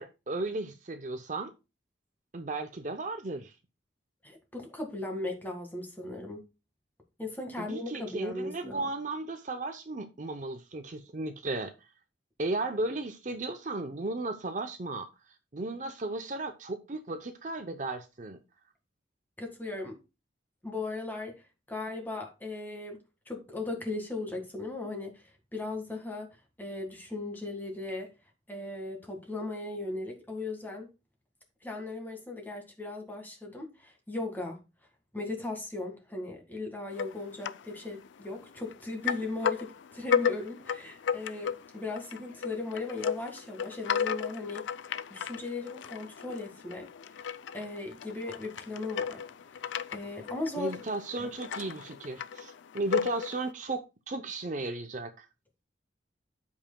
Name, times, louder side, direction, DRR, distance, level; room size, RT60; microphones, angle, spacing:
voice 1, 0.0-1.5 2.3-3.5 7.6-11.7 12.4-15.1 15.5-18.4 50.6-55.3, right 2 dB, 40° right, 0.6 m, -35 dB
voice 2, 4.2-6.4 7.2-8.9 19.4-20.0 20.6-21.4 21.7-25.2 25.5-28.1 28.5-30.9 31.6-34.6 35.1-44.7 45.1-46.9 47.5-49.2 49.6-50.7 51.2-51.3, left 2 dB, 10° left, 1.8 m, -37 dB
sound 1, 36.9-37.7 38.0-38.8 39.0-53.5, left 7 dB, 75° left, 0.4 m, -34 dB
13.5 x 5.5 x 2.2 m
head